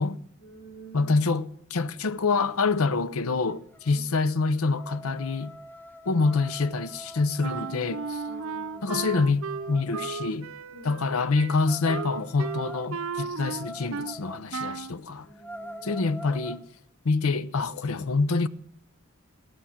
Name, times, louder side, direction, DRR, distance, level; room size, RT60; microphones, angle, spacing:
voice 1, 0.4-1.1 3.9-4.1 8.2-8.9 10.7-11.0 15.2-16.0, right 3 dB, 50° left, 4.5 m, -47 dB
voice 2, 0.9-5.5 6.1-8.2 8.8-10.5 10.8-15.3 15.8-16.6 17.0-18.5, left 3 dB, 90° left, 0.7 m, -26 dB
sound 1, 3.1-3.2 3.5-10.4 11.6-14.5 14.9-15.0 15.3-16.7, equal, 10° left, 1.0 m, -44 dB
Wind instrument woodwind instrument, 7.4-14.2 14.5-15.0, right 5 dB, 70° right, 0.6 m, -35 dB
17.0 x 11.5 x 7.1 m
head